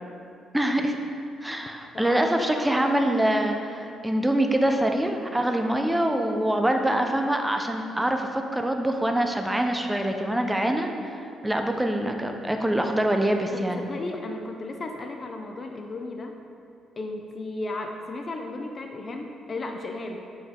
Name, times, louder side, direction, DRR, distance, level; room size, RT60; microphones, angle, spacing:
voice 1, 0.5-1.0 1.4-13.9, right 1 dB, 5° right, 4 dB, 0.6 m, -25 dB
voice 2, 1.9-3.1 5.3-5.5 13.5-16.3 17.0-20.2, left 2 dB, 40° left, 3 dB, 0.5 m, -35 dB
8.0 x 4.5 x 3.7 m, 2.5 s
cardioid pair, 90°, 0 cm